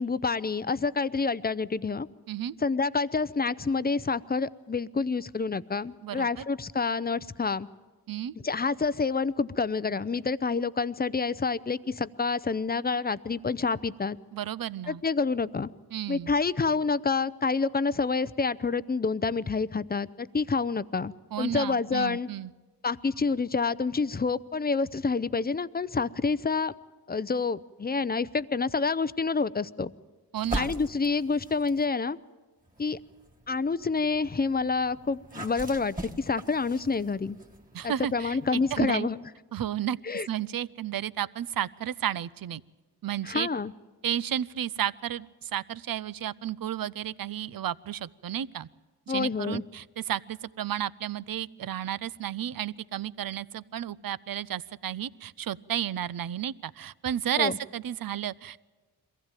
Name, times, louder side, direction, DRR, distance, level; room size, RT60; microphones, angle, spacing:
voice 1, 0.0-2.1 2.6-7.7 8.4-14.2 14.9-15.7 16.1-22.3 22.8-26.7 27.1-29.9 30.5-32.2 32.8-33.0 33.5-37.4 37.8-39.2 40.0-40.3 43.2-43.7 49.1-49.6 57.4-57.6, left 4 dB, 25° left, 17 dB, 0.6 m, -28 dB
voice 2, 14.3-15.0 15.9-16.3 21.3-22.5 30.3-30.7 37.7-39.1 39.5-40.0 40.3-42.6 43.0-43.5 44.0-48.7 49.1-58.6, right 10 dB, 55° right, 19 dB, 0.6 m, -32 dB
sound 1, 30.3-31.9 32.6-38.8, right 1 dB, 20° right, 2.1 m, -41 dB
22.5 x 15.5 x 9.1 m, 1.3 s
cardioid pair, 50°, 41 cm